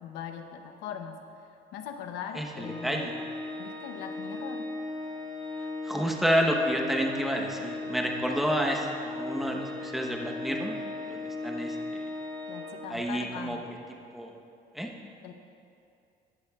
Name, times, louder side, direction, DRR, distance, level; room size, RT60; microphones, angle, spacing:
voice 1, 0.0-1.2 1.7-3.1 3.6-4.7 12.5-13.7 15.2-15.3, left 8 dB, 90° left, 6 dB, 0.8 m, -40 dB
voice 2, 2.3-3.2 5.8-10.8 11.1-11.8 12.9-13.6 14.1-14.3 14.7-14.9, equal, ahead, 0 dB, 1.0 m, -29 dB
Organ, 2.6-13.3, left 2 dB, 25° left, 1.4 m, -37 dB
15.0 x 10.0 x 2.4 m, 2.6 s
cardioid pair, 110°, 17 cm